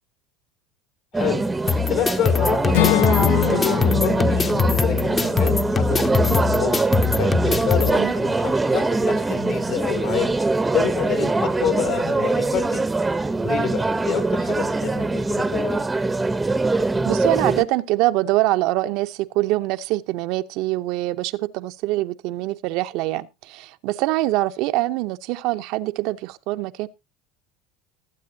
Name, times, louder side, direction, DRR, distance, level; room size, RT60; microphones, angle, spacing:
voice 1, 1.1-3.2 3.5-6.8 7.2-10.3 10.7-12.8 13.4-15.8, left 8 dB, 65° left, 2.8 m, -28 dB
sound 1, 1.1-17.6, right 3 dB, 10° right, 0.7 m, -23 dB
sound 2, 1.7-7.9, left 5 dB, 25° left, 0.8 m, -22 dB
Acoustic guitar / Strum, 2.7-6.8, left 12 dB, 85° left, 0.9 m, -26 dB
voice 2, 7.8-8.1 17.0-26.9, right 17 dB, 65° right, 0.6 m, -24 dB
20.5 x 8.5 x 2.7 m
supercardioid pair, 120°, 0 cm